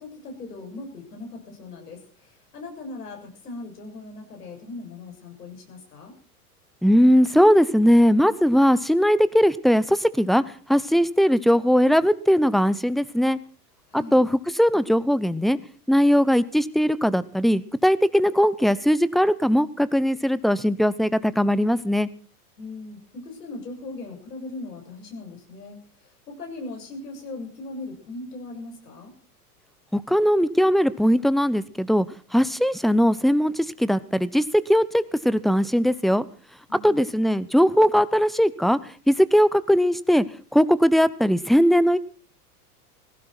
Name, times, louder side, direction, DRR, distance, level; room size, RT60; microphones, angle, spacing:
voice 1, 0.0-6.1 13.9-14.2 22.6-25.8 26.3-29.1 36.7-37.3, left 2 dB, 80° left, 2 dB, 7.4 m, -39 dB
voice 2, 6.8-10.4 10.7-13.4 13.9-15.6 15.9-22.1 29.9-32.1 32.3-34.4 34.7-36.2 36.8-38.8 39.1-40.2 40.5-42.0, equal, ahead, 16 dB, 0.7 m, -19 dB
19.0 x 16.0 x 4.5 m, 0.43 s
hypercardioid pair, 100°, 46 cm